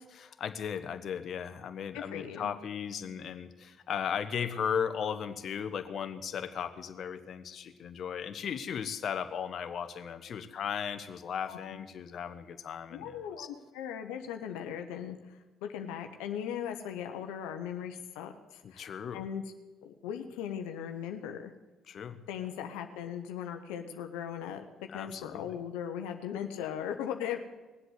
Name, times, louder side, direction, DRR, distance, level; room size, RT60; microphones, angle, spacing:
voice 1, 0.1-13.5 18.6-19.2 21.9-22.2 24.9-25.5, left 7 dB, 55° left, 8 dB, 1.1 m, -36 dB
voice 2, 1.9-2.5 11.5-11.8 12.9-18.9 19.1-19.4 19.8-21.5 22.3-27.4, left 9 dB, 80° left, 6 dB, 1.0 m, -38 dB
20.0 x 8.0 x 8.1 m, 1.2 s
hypercardioid pair, 60°, 0 cm